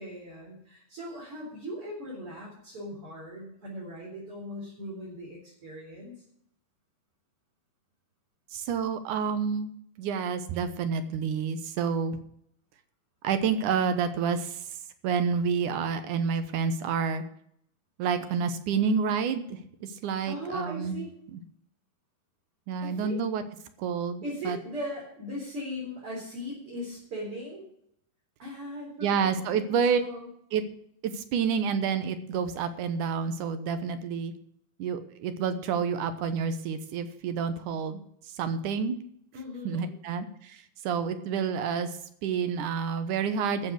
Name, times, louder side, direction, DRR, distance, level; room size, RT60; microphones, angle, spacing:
voice 1, 0.0-6.1 20.2-21.1 22.8-23.2 24.2-27.7 28.4-30.3 39.3-39.9, equal, 40° right, -5 dB, 4.7 m, -39 dB
voice 2, 8.5-9.7 10.0-12.2 13.2-14.8 15.0-17.2 18.0-21.0 21.3-21.4 22.7-23.4 23.8-24.6 29.0-30.0 30.5-30.6 31.0-34.3 34.8-39.0 39.6-43.7, right 6 dB, 70° right, 10 dB, 2.4 m, -29 dB
13.5 x 7.2 x 8.1 m, 0.69 s
omnidirectional pair, 3.8 m